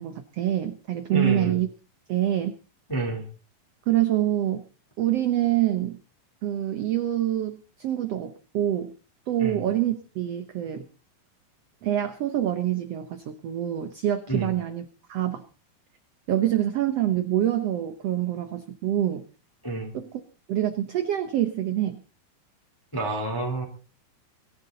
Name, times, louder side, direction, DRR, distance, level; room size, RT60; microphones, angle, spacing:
voice 1, 0.0-1.7 2.1-2.6 3.9-4.6 5.0-6.0 6.4-8.9 9.3-10.9 11.8-15.4 16.3-19.2 19.9-20.1 20.5-22.0, right 12 dB, 75° right, 9 dB, 1.4 m, -26 dB
voice 2, 1.1-1.6 2.9-3.2 9.4-9.6 14.3-14.5 19.6-19.9 22.9-23.6, right 2 dB, 5° left, 1 dB, 2.7 m, -28 dB
23.5 x 11.0 x 4.0 m, 0.36 s
omnidirectional pair, 4.2 m